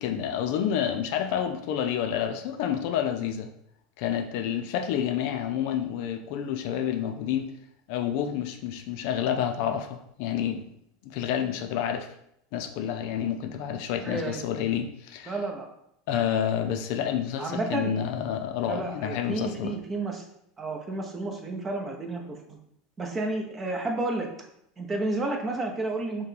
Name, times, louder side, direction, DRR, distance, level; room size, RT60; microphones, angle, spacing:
voice 1, 0.0-3.5 4.0-7.5 7.9-10.7 11.0-12.1 12.5-15.4 16.1-19.8, left 9 dB, 65° left, 6 dB, 0.4 m, -29 dB
voice 2, 14.0-14.4 15.3-15.7 17.4-17.9 18.7-20.2 20.6-22.6 23.0-24.3 24.8-26.3, right 2 dB, 20° right, 2 dB, 0.8 m, -31 dB
5.6 x 2.2 x 3.3 m, 0.74 s
supercardioid pair, 125°, 0 cm